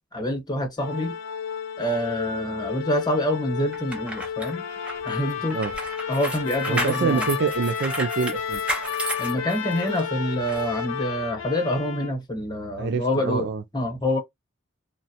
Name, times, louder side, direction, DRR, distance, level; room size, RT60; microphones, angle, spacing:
voice 1, 0.1-1.1 1.8-4.6 5.0-5.6 6.1-7.3 9.2-13.5 13.7-14.2, left 1 dB, 20° left, 0.8 m, -26 dB
Organ, 0.8-11.7, left 7 dB, 65° left, 0.3 m, -34 dB
sound 1, 3.7-10.0 10.5-10.6, right 1 dB, 5° right, 0.5 m, -33 dB
Trumpet, 4.5-12.1, left 8 dB, 85° left, 0.7 m, -34 dB
voice 2, 6.7-8.6 12.8-13.6, right 5 dB, 55° right, 0.3 m, -26 dB
2.8 x 2.0 x 2.8 m
head